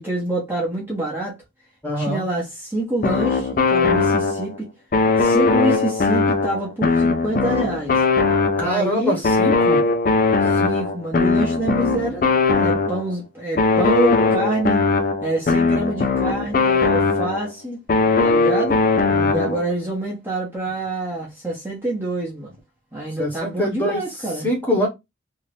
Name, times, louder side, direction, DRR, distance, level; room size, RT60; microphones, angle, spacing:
voice 1, 0.0-1.3 1.9-4.7 5.2-8.0 8.6-9.2 10.4-14.9 15.2-17.8 18.2-18.8 19.3-22.5 22.9-24.5, right 2 dB, 10° right, 0.8 m, -26 dB
voice 2, 1.8-2.2 8.6-9.8 19.1-19.5 23.2-24.1 24.4-24.9, equal, 10° left, 1.1 m, -24 dB
sound 1, 3.0-4.6 4.9-8.9 9.2-13.1 13.6-17.5 17.9-19.7, left 3 dB, 45° left, 0.4 m, -19 dB
2.8 x 2.5 x 3.3 m
head